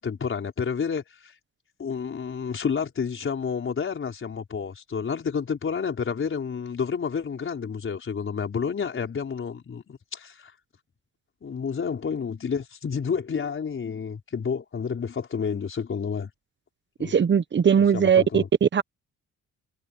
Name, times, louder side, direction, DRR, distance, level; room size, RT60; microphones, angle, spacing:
voice 1, 0.0-1.3 1.8-10.5 11.4-16.3 17.0-17.2 17.9-18.5, left 6 dB, 45° left, 4.6 m, -30 dB
voice 2, 17.0-18.8, right 7 dB, 40° right, 1.2 m, -20 dB
cardioid pair, 90°, 30 cm